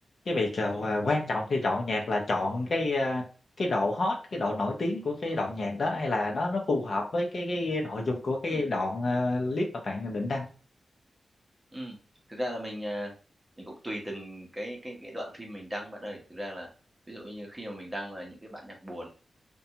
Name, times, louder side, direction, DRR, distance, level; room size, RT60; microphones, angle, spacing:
voice 1, 0.3-3.3 3.6-10.5, left 2 dB, 55° left, 1 dB, 0.6 m, -29 dB
voice 2, 12.3-13.1 13.6-16.7 17.1-19.1, equal, 15° right, 0 dB, 0.7 m, -38 dB
2.6 x 2.2 x 2.7 m, 0.37 s
wide cardioid pair, 145°, 0 cm